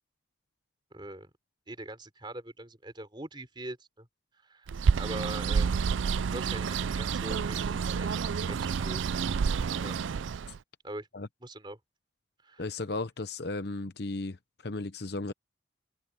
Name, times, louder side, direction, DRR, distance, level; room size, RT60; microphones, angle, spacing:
voice 1, 0.9-1.3 1.7-4.1 4.3-4.7 5.0-5.8 6.3-9.0 9.8-10.0 10.8-11.1 11.4-11.8 12.4-12.7, right 1 dB, 25° right, 3.5 m, -42 dB
Bird, 4.7-10.6, right 6 dB, 80° right, 0.4 m, -29 dB
voice 2, 12.6-14.4 14.6-15.3, left 2 dB, 55° left, 0.9 m, -35 dB
open air
head